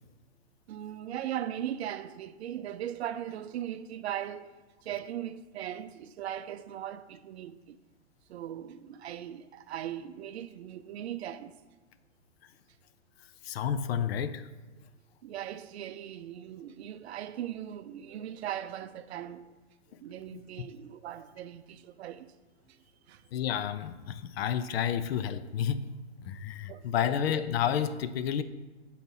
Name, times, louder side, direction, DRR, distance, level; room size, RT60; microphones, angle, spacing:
voice 1, 0.7-4.5 4.8-7.8 8.3-11.6 15.2-19.5 20.0-22.3 22.7-22.8 23.1-23.2 26.7-27.2, right 11 dB, 65° right, 0.5 m, -39 dB
voice 2, 13.4-14.5 20.3-20.4 23.3-25.8 26.2-28.4, left 9 dB, 60° left, 0.5 m, -30 dB
6.6 x 4.1 x 5.5 m
hypercardioid pair, 115°, 35 cm